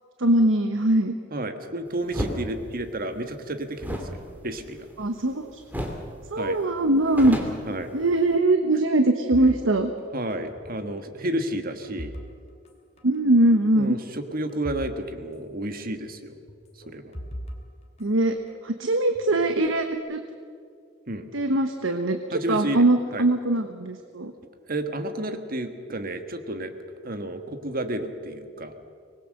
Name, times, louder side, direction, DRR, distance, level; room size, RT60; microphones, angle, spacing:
voice 1, 0.2-1.1 5.0-5.6 6.3-7.4 7.9-9.9 13.0-14.0 18.0-18.4 18.6-20.2 21.3-22.2 22.5-24.3, right 1 dB, 80° right, 7 dB, 1.2 m, -21 dB
voice 2, 1.3-4.0 4.4-4.9 6.4-6.6 7.7-7.9 10.1-12.2 13.7-16.4 16.8-17.1 21.1-21.2 22.3-23.2 24.7-26.7 27.0-28.7, right 1 dB, 45° right, 8 dB, 1.6 m, -31 dB
sound 1, 2.1-2.4 3.8-5.3 5.7-6.1 6.4-6.5 6.8-8.4, equal, 10° right, 2.7 m, -33 dB
sound 2, 9.3-10.9 11.1-12.7 13.0-13.2 13.8-14.9 15.2-15.3 16.5-18.6 19.1-20.0, equal, 35° left, 2.6 m, -41 dB
24.5 x 20.0 x 6.6 m, 2.3 s
head